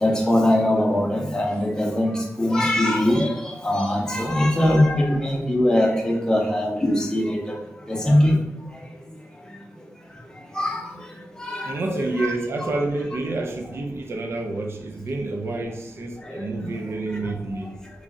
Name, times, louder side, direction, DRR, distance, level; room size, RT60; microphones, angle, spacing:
voice 1, 0.0-2.1 2.4-3.4 3.6-7.2 7.9-8.4 10.6-10.8 11.4-11.7 12.2-12.3 12.6-12.7, left 1 dB, 15° left, -1 dB, 0.6 m, -21 dB
voice 2, 11.6-17.7, right 2 dB, 50° right, 2 dB, 0.5 m, -28 dB
3.1 x 2.5 x 3.7 m, 0.86 s
wide cardioid pair, 155°, 5 cm